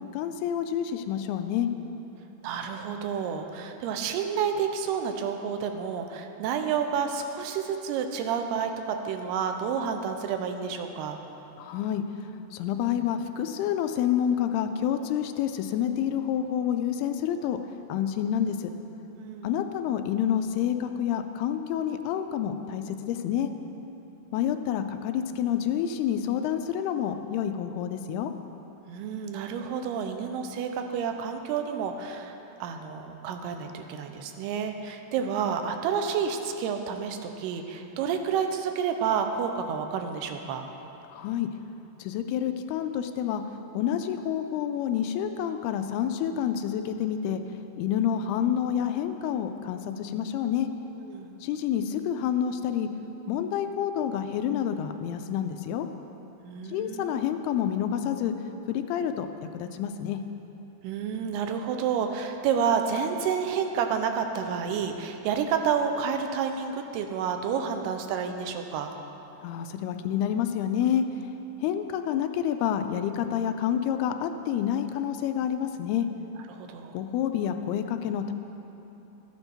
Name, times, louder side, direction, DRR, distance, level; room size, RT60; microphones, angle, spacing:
voice 1, 0.1-1.7 11.6-12.0 12.5-17.6 17.9-18.7 19.4-23.5 24.3-28.3 41.1-41.5 42.0-43.4 43.7-47.4 47.8-50.7 51.4-52.9 53.3-55.9 56.7-58.3 58.7-59.3 59.5-60.2 69.4-71.1 71.6-76.1 76.9-78.3, left 9 dB, 85° left, 7 dB, 2.4 m, -28 dB
voice 2, 2.4-11.2 19.2-19.6 28.9-40.7 51.0-51.4 56.4-57.2 60.8-68.9 76.5-77.0, right 7 dB, 85° right, 6 dB, 2.7 m, -30 dB
13.5 x 9.1 x 4.4 m, 3.0 s
omnidirectional pair, 4.6 m